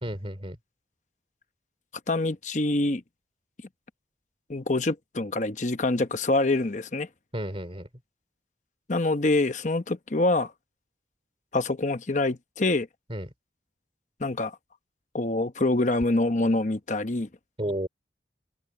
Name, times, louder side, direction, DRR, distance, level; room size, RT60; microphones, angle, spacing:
voice 1, 0.0-0.6 7.3-7.9 13.1-13.3 17.6-17.9, right 1 dB, 30° right, 2.9 m, -32 dB
voice 2, 2.1-3.0 4.5-7.1 8.9-10.5 11.5-12.9 14.2-14.6 15.1-17.3, left 2 dB, 40° left, 0.9 m, -25 dB
head